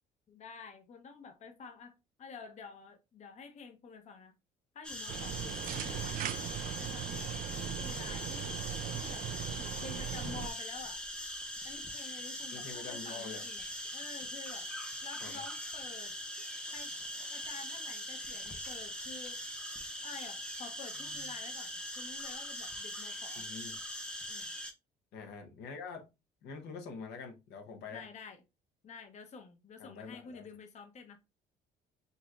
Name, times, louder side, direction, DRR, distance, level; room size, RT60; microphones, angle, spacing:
voice 1, 0.3-4.4 4.7-6.1 6.8-8.7 8.9-9.3 9.6-11.0 11.6-13.7 13.9-14.7 15.0-16.1 16.7-16.9 17.3-19.5 20.0-23.5 24.3-24.5 27.9-28.4 28.8-31.2, left 5 dB, 45° left, 0.8 m, -49 dB
sound 1, 4.8-24.7, equal, 5° left, 0.8 m, -41 dB
sound 2, 5.1-10.5, right 10 dB, 55° right, 0.4 m, -39 dB
voice 2, 12.5-13.4 15.2-15.4 23.4-23.8 25.1-26.1 26.4-28.1 29.8-30.4, left 5 dB, 80° left, 1.0 m, -45 dB
5.5 x 2.9 x 2.4 m
cardioid pair, 110°, 17 cm